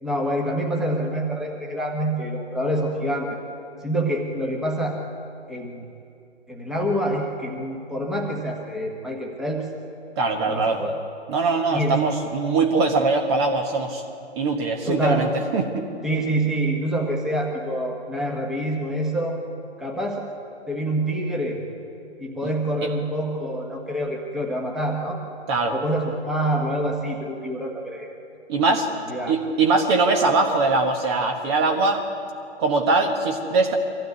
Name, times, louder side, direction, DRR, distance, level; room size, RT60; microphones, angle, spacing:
voice 1, 0.0-3.4 3.8-5.0 5.5-5.8 6.5-9.7 10.5-10.9 11.7-12.2 14.9-15.3 16.0-19.4 19.8-20.2 20.7-21.7 22.2-25.2 25.7-28.1 29.1-29.3, right 1 dB, ahead, 0 dB, 1.5 m, -26 dB
voice 2, 10.2-10.8 11.3-14.0 14.4-15.8 22.4-22.5 25.5-25.7 28.5-28.9 29.3-32.0 32.6-33.7, right 3 dB, 25° right, 3 dB, 1.3 m, -21 dB
24.0 x 15.5 x 9.6 m, 2.6 s
figure-of-eight pair, 145°, 35 cm